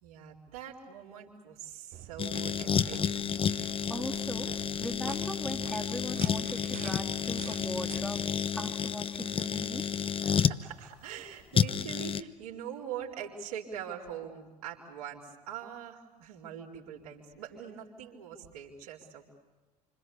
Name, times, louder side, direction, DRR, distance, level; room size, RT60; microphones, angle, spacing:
voice 1, 0.0-3.0 10.2-19.3, right 9 dB, 70° right, -1 dB, 4.4 m, -43 dB
sound 1, 1.9-8.3, right 11 dB, 45° right, 1.2 m, -48 dB
sound 2, 2.2-10.6 11.5-12.2, left 7 dB, 25° left, 1.0 m, -30 dB
voice 2, 3.6-4.5 4.8-8.2 8.5-9.8, equal, 5° left, 1 dB, 2.2 m, -39 dB
28.5 x 26.0 x 7.0 m, 1.3 s
figure-of-eight pair, 65°, 20 cm